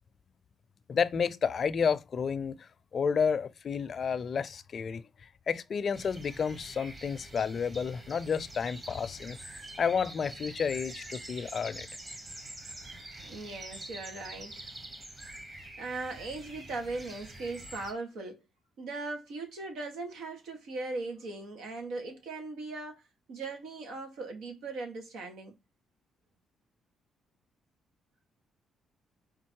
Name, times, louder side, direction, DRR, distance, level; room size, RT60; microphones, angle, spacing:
voice 1, 0.9-9.4 9.8-11.9, left 6 dB, 50° left, 0.6 m, -31 dB
sound 1, 5.9-17.9, right 1 dB, 30° right, 1.6 m, -46 dB
voice 2, 13.2-14.7 15.8-18.4 18.8-23.0 23.3-25.5, right 3 dB, 80° right, 1.9 m, -39 dB
5.3 x 3.9 x 4.7 m
cardioid pair, 90°, 0 cm